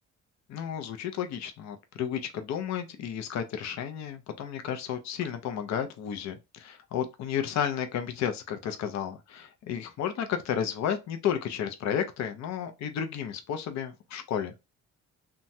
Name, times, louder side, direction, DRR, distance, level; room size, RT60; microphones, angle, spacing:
voice 1, 0.5-14.5, left 8 dB, 65° left, 0.6 m, -32 dB
2.9 x 2.2 x 2.6 m
cardioid pair, 90°, 30 cm